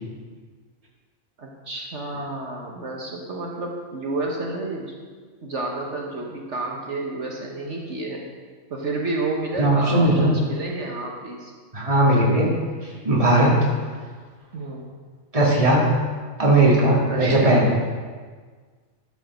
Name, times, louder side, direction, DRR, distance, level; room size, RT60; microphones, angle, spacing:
voice 1, 1.4-4.9 5.4-8.2 8.7-11.5 14.5-14.9 16.9-17.6, right 2 dB, 60° right, -1 dB, 1.6 m, -30 dB
voice 2, 9.6-10.4 11.7-12.5 12.8-13.6 15.3-15.9 16.4-17.7, right 1 dB, 25° right, -4 dB, 2.3 m, -18 dB
13.0 x 6.3 x 6.2 m, 1.5 s
omnidirectional pair, 1.4 m